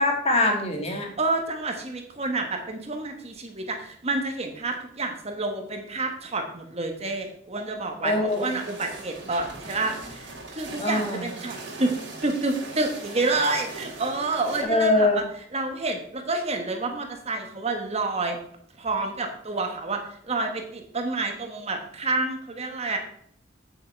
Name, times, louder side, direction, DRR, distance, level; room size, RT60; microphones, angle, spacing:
voice 1, 0.0-1.1 8.0-8.5 10.8-11.2 14.6-15.2, left 2 dB, 35° left, 2 dB, 1.7 m, -23 dB
voice 2, 1.2-11.9 12.2-15.2 15.5-18.4 18.8-23.0, right 3 dB, 35° right, 4 dB, 1.3 m, -29 dB
sound 1, 8.3-14.6, right 3 dB, 65° right, 3.3 m, -40 dB
8.6 x 7.2 x 4.5 m, 0.64 s
head